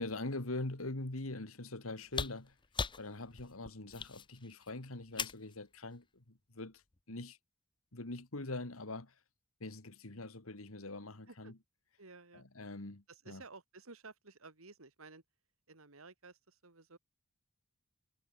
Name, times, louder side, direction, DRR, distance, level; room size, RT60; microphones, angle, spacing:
voice 1, 0.0-2.6 3.0-7.4 7.9-9.1 9.6-11.6 12.3-13.4, left 2 dB, 85° left, 2.3 m, -43 dB
sound 1, 2.1-5.5 6.9-7.0, left 5 dB, 25° left, 0.8 m, -40 dB
voice 2, 12.0-12.4 13.1-15.2 15.7-17.0, right 3 dB, 80° right, 2.6 m, -54 dB
head